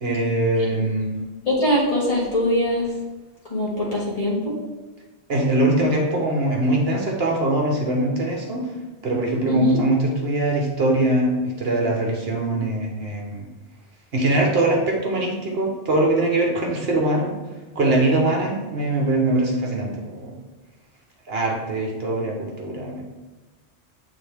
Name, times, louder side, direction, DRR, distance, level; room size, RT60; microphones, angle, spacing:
voice 1, 0.0-1.1 5.3-8.7 9.0-13.5 14.1-17.4 17.7-20.4 21.3-23.0, right 2 dB, 65° right, 0 dB, 1.3 m, -22 dB
voice 2, 1.5-2.8 3.5-4.6 9.4-9.8, left 1 dB, 35° left, -7 dB, 1.9 m, -22 dB
7.7 x 3.8 x 3.5 m, 1.2 s
omnidirectional pair, 1.1 m